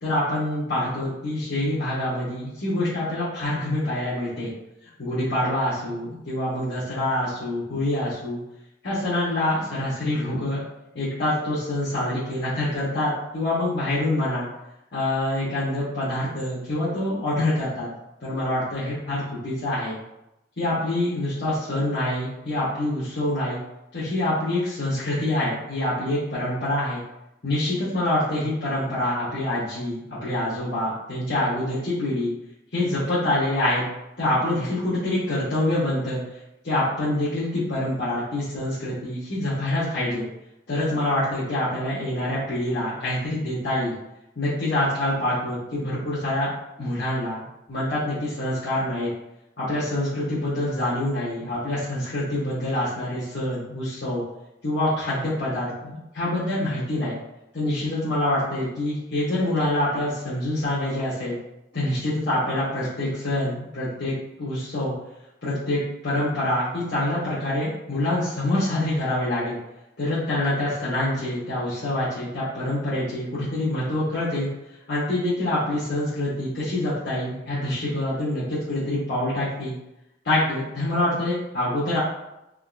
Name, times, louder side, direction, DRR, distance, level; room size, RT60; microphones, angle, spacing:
voice 1, 0.0-4.5 5.0-8.4 8.8-10.6 10.9-14.5 14.9-17.9 18.2-19.9 20.6-23.6 23.9-27.0 27.4-32.3 32.7-33.8 34.2-36.2 36.6-40.2 40.7-43.9 44.4-46.5 46.8-49.1 49.6-54.2 54.6-57.1 57.5-61.4 61.7-64.9 65.4-69.6 70.0-74.5 74.9-79.7 80.2-82.0, left 1 dB, 70° left, -10 dB, 1.0 m, -26 dB
3.5 x 2.3 x 2.4 m, 0.90 s
head